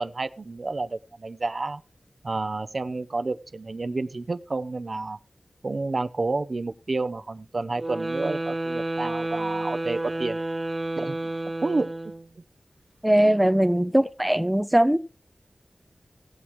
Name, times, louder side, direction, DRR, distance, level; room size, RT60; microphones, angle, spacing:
voice 1, 0.0-1.8 2.2-5.2 5.6-10.4 11.0-11.2 11.6-11.9 13.5-13.7, right 3 dB, 55° right, 0.6 m, -30 dB
sound 1, 7.7-12.3, right 2 dB, 35° right, 1.2 m, -30 dB
voice 2, 13.0-15.0, right 1 dB, 10° right, 0.5 m, -20 dB
18.5 x 7.1 x 3.0 m
wide cardioid pair, 85°, 0 cm